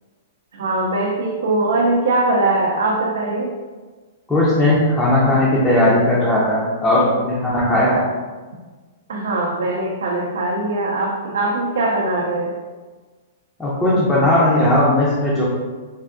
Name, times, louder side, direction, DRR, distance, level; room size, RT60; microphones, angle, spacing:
voice 1, 0.5-3.5 9.1-12.6, right 2 dB, 75° right, -2 dB, 0.4 m, -21 dB
voice 2, 4.3-8.0 13.6-15.5, left 1 dB, 5° left, -8 dB, 0.5 m, -17 dB
3.4 x 2.5 x 2.5 m, 1.4 s
hypercardioid pair, 165°, 0 cm